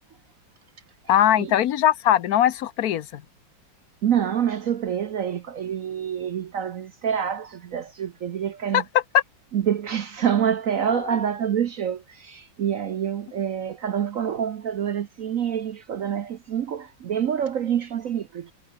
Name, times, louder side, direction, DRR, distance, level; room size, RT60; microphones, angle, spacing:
voice 1, 1.1-3.2 8.7-8.8 9.1-9.2, left 11 dB, 60° left, 1.1 m, -20 dB
voice 2, 4.0-8.8 9.5-18.5, right 9 dB, 60° right, 0.9 m, -27 dB
omnidirectional pair, 2.1 m